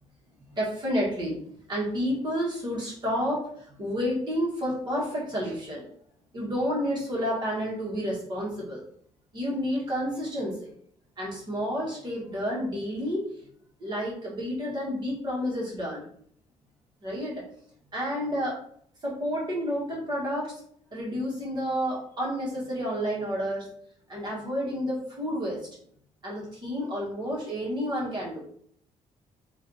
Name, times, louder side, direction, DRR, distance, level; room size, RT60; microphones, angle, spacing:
voice 1, 0.5-1.4 1.7-5.8 6.3-8.8 9.3-10.7 11.2-13.2 13.8-16.0 17.0-17.4 17.9-18.6 19.0-20.6 20.9-23.7 24.1-25.6 26.2-28.4, equal, 35° right, -4 dB, 1.3 m, -30 dB
3.1 x 2.5 x 3.9 m, 0.63 s
cardioid pair, 160°, 12 cm